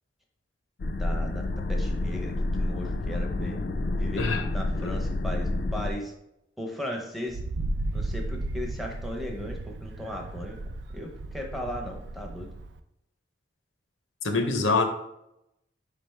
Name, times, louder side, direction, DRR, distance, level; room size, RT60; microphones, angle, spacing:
sound 1, 0.8-5.9, left 2 dB, 50° left, 0.3 m, -29 dB
voice 1, 1.0-3.6 3.9-6.1 6.6-7.4 7.9-10.6 10.9-12.5, left 1 dB, ahead, 1 dB, 0.6 m, -37 dB
voice 2, 4.1-4.5 4.8-4.9 14.2-14.8, left 3 dB, 90° left, 6 dB, 0.7 m, -25 dB
Wind, 7.3-12.8, right 2 dB, 70° right, 0.3 m, -34 dB
4.9 x 3.3 x 3.2 m, 0.83 s
head